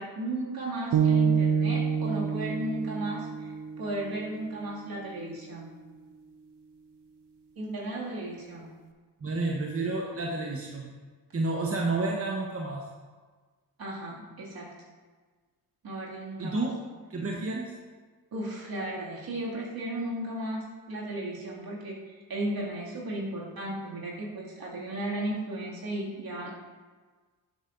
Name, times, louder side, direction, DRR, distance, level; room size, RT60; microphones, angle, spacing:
voice 1, 0.0-5.7 7.6-8.7 13.8-14.7 15.8-16.7 18.3-26.5, right 1 dB, 60° right, -4 dB, 2.4 m, -35 dB
sound 1, 0.9-5.1, right 7 dB, 75° right, 0.8 m, -28 dB
voice 2, 9.2-10.9 11.3-12.8 16.4-16.7 17.1-17.7, right 3 dB, 35° right, -1 dB, 1.1 m, -30 dB
11.5 x 6.6 x 2.6 m, 1.4 s
supercardioid pair, 50°, 41 cm